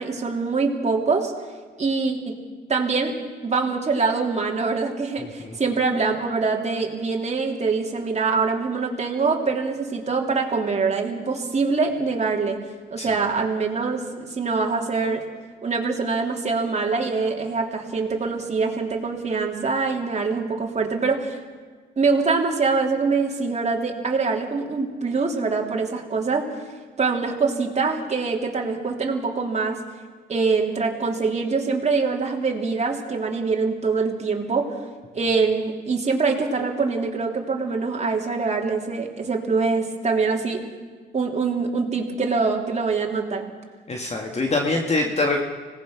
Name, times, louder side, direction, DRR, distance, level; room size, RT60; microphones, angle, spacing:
voice 1, 0.0-1.3 1.8-2.3 2.7-3.1 3.4-12.6 12.9-15.2 15.6-21.4 22.0-26.5 27.0-29.8 30.3-34.8 35.1-40.6 41.1-43.5, right 4 dB, 35° right, 1 dB, 3.4 m, -24 dB
voice 2, 5.2-5.6 13.0-13.1 43.9-45.4, left 2 dB, 35° left, 2 dB, 2.1 m, -24 dB
25.5 x 18.5 x 6.1 m, 1.5 s
cardioid pair, 90°, 20 cm